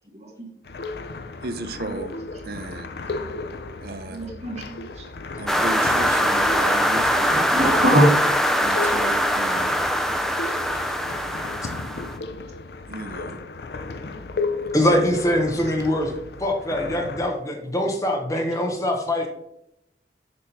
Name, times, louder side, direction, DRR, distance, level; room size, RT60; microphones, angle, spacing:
sound 1, 0.6-17.3, left 3 dB, 65° left, 0.5 m, -34 dB
voice 1, 1.4-2.1 2.4-2.9 3.8-4.2 5.4-7.5 8.6-9.7 12.9-13.4 15.1-15.2, right 2 dB, 60° right, 10 dB, 0.6 m, -34 dB
voice 2, 4.0-5.1 7.3-8.2 8.8-8.9, equal, 40° right, -2 dB, 2.1 m, -23 dB
sound 2, 5.5-12.2, equal, ahead, 0.4 m, -22 dB
voice 3, 14.7-16.1 16.4-19.3, left 1 dB, 20° left, 2 dB, 0.9 m, -23 dB
6.7 x 3.6 x 5.6 m, 0.79 s
head